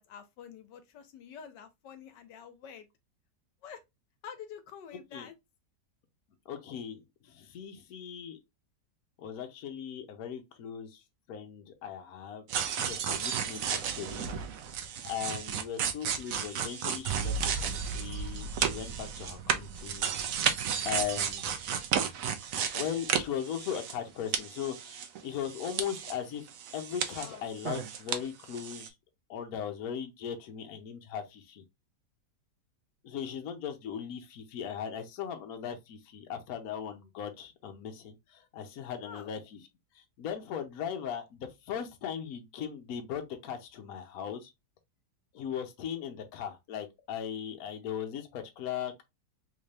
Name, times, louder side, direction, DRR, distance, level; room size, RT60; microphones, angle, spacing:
voice 1, 0.0-2.9 3.6-3.8 4.2-5.3 27.1-27.5 39.0-39.3, left 7 dB, 80° left, 1.3 m, -47 dB
voice 2, 6.5-8.4 9.2-11.0 11.3-12.5 12.8-14.3 15.0-20.1 20.8-21.6 22.7-26.5 26.7-28.9 29.3-31.6 33.0-39.6 39.9-44.5 45.3-49.0, left 8 dB, 60° left, 1.1 m, -38 dB
sound 1, 12.5-24.1 24.3-26.2 26.5-28.2 28.5-28.9, right 7 dB, 65° right, 0.9 m, -33 dB
3.6 x 2.7 x 3.2 m
omnidirectional pair, 1.9 m